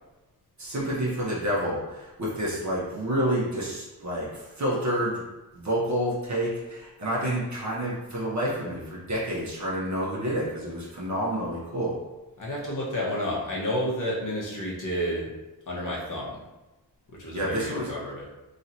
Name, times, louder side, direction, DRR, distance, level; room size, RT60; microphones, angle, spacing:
voice 1, 0.6-5.2 5.5-12.0 17.3-17.9, equal, 50° right, -6 dB, 0.9 m, -29 dB
voice 2, 12.4-15.3 15.7-16.4 17.1-18.2, equal, 55° left, -4 dB, 1.2 m, -30 dB
3.2 x 2.7 x 2.8 m, 1.1 s
cardioid pair, 50°, 38 cm